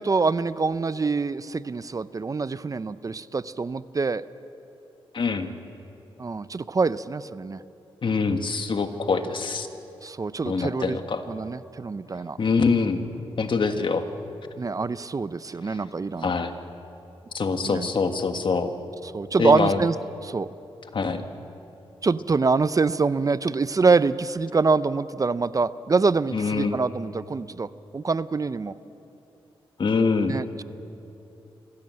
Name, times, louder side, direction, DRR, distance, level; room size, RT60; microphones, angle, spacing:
voice 1, 0.0-4.2 6.2-7.6 10.0-11.0 11.3-12.4 14.6-16.3 17.6-17.9 19.1-19.9 20.2-20.5 22.0-28.7 30.3-30.6, right 4 dB, 35° right, 15 dB, 0.6 m, -25 dB
voice 2, 5.1-5.5 8.0-9.7 10.4-11.3 12.4-13.0 13.4-14.0 15.7-15.8 16.2-16.5 17.3-18.7 19.4-19.8 20.9-21.2 26.3-26.8 29.8-30.4, left 4 dB, 55° left, 7 dB, 1.7 m, -24 dB
24.5 x 16.5 x 7.7 m, 2.9 s
cardioid pair, 60°, 10 cm